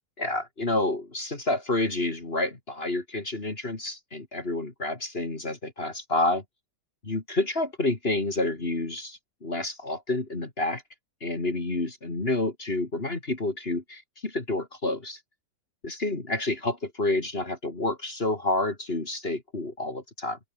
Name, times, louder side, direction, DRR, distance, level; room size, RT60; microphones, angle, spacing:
voice 1, 0.2-6.4 7.0-10.8 11.2-15.2 15.8-20.4, left 2 dB, 35° left, 3.1 m, -29 dB
open air
omnidirectional pair, 1.8 m